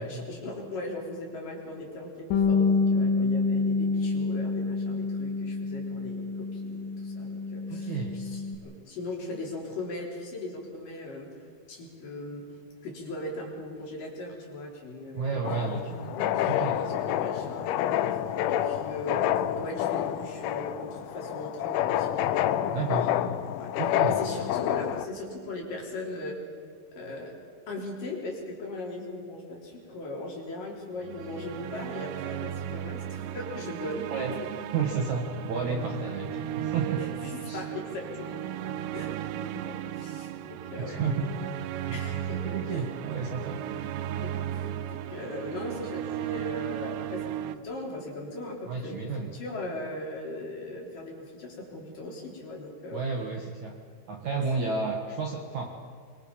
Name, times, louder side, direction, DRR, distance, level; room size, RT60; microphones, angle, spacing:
voice 1, 0.0-11.3 11.7-12.5 12.8-15.4 15.8-15.9 16.1-22.1 22.5-23.2 23.5-23.7 24.0-26.4 26.9-27.4 27.7-34.1 34.4-34.5 37.0-38.4 38.7-41.2 41.9-42.8 44.2-53.0, left 2 dB, 50° left, -1 dB, 5.2 m, -39 dB
Bass guitar, 2.3-8.6, left 4 dB, 70° left, 3.7 m, -27 dB
voice 2, 7.7-8.2 15.1-16.2 16.5-16.7 22.7-23.1 23.8-24.2 34.1-34.3 34.7-37.1 37.5-37.6 40.8-41.3 41.9-43.6 48.7-49.3 52.9-53.7 54.1-55.8, right 5 dB, 55° right, 1 dB, 2.2 m, -32 dB
sound 1, 15.4-25.1, left 11 dB, 90° left, 3.2 m, -28 dB
sound 2, 31.0-47.6, right 11 dB, 80° right, 2.7 m, -35 dB
25.0 x 24.5 x 5.7 m, 2.2 s
omnidirectional pair, 5.3 m